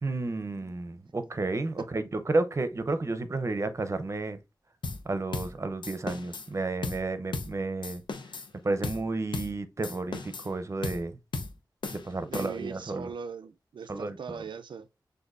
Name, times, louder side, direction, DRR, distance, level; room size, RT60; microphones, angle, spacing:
voice 1, 0.0-4.4 5.1-8.0 8.6-11.2 12.0-13.1 13.9-14.2, right 3 dB, 40° right, 0.6 m, -31 dB
sound 1, 4.8-5.1 5.3-5.6 5.8-6.5 6.8-7.1 7.3-7.6 7.8-8.5 8.8-9.1 9.3-9.6 9.8-10.5 10.8-11.1 11.3-11.6 11.8-12.7, left 3 dB, 80° left, 0.7 m, -36 dB
voice 2, 12.2-14.9, right 6 dB, 90° right, 0.4 m, -40 dB
6.4 x 2.6 x 2.5 m
wide cardioid pair, 90°, 8 cm